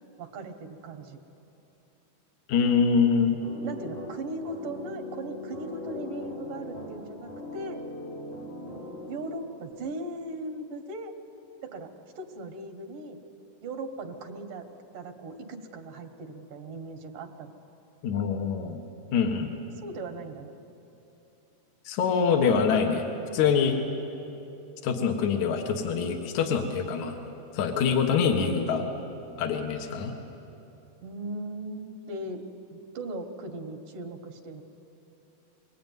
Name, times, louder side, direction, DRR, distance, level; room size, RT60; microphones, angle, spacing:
voice 1, 0.2-1.2 3.6-7.8 9.1-11.1 11.6-11.9 12.2-13.2 13.6-14.7 14.9-17.5 19.8-20.5 31.0-32.4 32.7-34.6, right 2 dB, 80° right, 5 dB, 3.0 m, -38 dB
voice 2, 2.5-3.4 18.0-18.8 19.1-19.5 21.9-23.0 23.3-23.8 24.8-27.2 27.5-28.8 29.4-30.1, left 6 dB, 70° left, 4 dB, 2.8 m, -24 dB
sound 1, 3.4-9.4, left 2 dB, 90° left, 7.4 m, -40 dB
24.0 x 21.5 x 9.3 m, 3.0 s
omnidirectional pair, 3.7 m